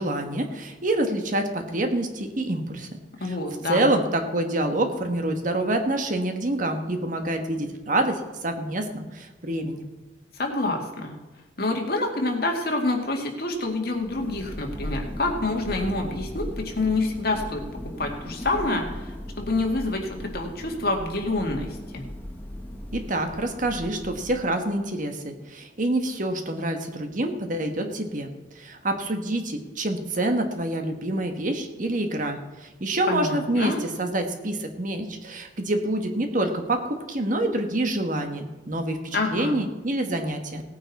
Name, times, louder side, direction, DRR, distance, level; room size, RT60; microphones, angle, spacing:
voice 1, 0.0-3.4 3.7-9.9 22.9-40.6, right 1 dB, 45° right, 5 dB, 1.4 m, -27 dB
voice 2, 3.2-3.9 10.4-11.1 11.6-17.6 18.0-21.7 21.9-22.0 33.1-33.8 39.1-39.6, left 2 dB, 55° left, 2 dB, 2.2 m, -27 dB
Thunder, 13.9-24.8, equal, 10° left, 1.4 m, -37 dB
17.5 x 9.3 x 4.2 m, 1.2 s
head